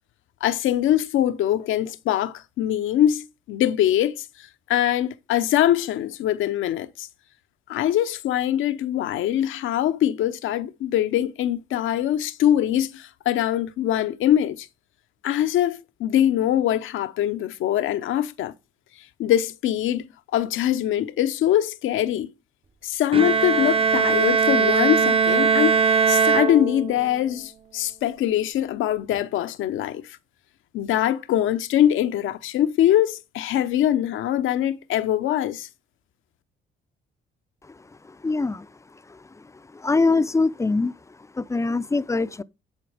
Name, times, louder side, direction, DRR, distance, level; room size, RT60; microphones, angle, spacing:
voice 1, 0.4-7.1 7.7-14.7 15.2-18.5 19.2-20.1 20.3-22.3 22.8-30.1 30.7-35.7, left 11 dB, 80° left, 0.7 m, -23 dB
Bowed string instrument, 23.1-27.1, right 5 dB, 30° right, 0.6 m, -20 dB
voice 2, 38.2-38.7 39.8-40.9 41.4-42.4, left 3 dB, 15° left, 0.4 m, -22 dB
10.5 x 4.3 x 4.9 m
cardioid pair, 90°, 20 cm